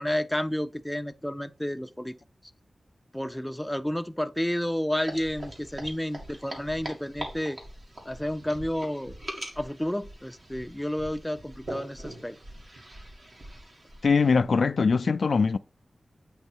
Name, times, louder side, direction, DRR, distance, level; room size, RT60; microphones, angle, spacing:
voice 1, 0.0-2.2 3.1-7.6 8.1-9.2 9.6-12.4, left 1 dB, 5° left, 0.5 m, -31 dB
sound 1, 5.0-14.5, right 1 dB, 60° right, 1.7 m, -42 dB
voice 2, 14.0-15.6, left 5 dB, 80° left, 0.3 m, -22 dB
8.0 x 3.1 x 4.4 m
wide cardioid pair, 60°, 0 cm